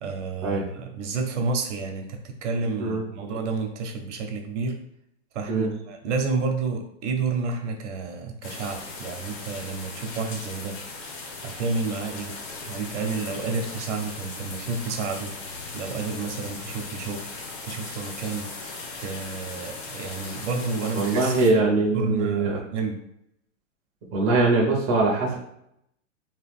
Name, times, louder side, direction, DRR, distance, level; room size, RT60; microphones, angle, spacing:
voice 1, 0.0-4.8 5.3-10.8 11.4-12.4 12.7-15.3 15.7-17.3 17.6-18.5 19.0-21.3 21.9-23.0, right 4 dB, 65° right, 4 dB, 0.8 m, -30 dB
sound 1, 8.4-21.5, left 3 dB, 45° left, 0.7 m, -38 dB
voice 2, 20.9-22.6 24.1-25.4, right 3 dB, 20° right, -3 dB, 0.5 m, -22 dB
3.0 x 2.2 x 3.4 m, 0.76 s
supercardioid pair, 160°, 39 cm